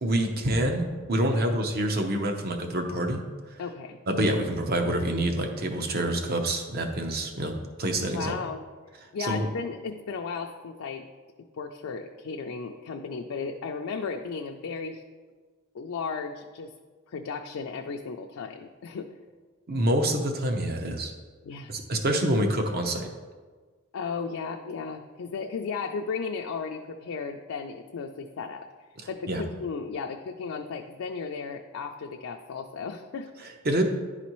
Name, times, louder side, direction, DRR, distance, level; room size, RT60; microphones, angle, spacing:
voice 1, 0.0-3.2 4.1-8.4 9.2-9.5 19.7-21.1 21.7-23.1 29.3-29.4 33.6-33.8, right 1 dB, 50° right, 4 dB, 0.7 m, -26 dB
voice 2, 3.6-4.0 8.1-8.6 9.1-11.0 11.6-15.0 15.7-16.7 17.1-19.1 21.4-21.7 23.9-28.7 29.1-33.8, left 5 dB, 85° left, 3 dB, 0.4 m, -35 dB
11.0 x 4.1 x 3.0 m, 1.4 s
head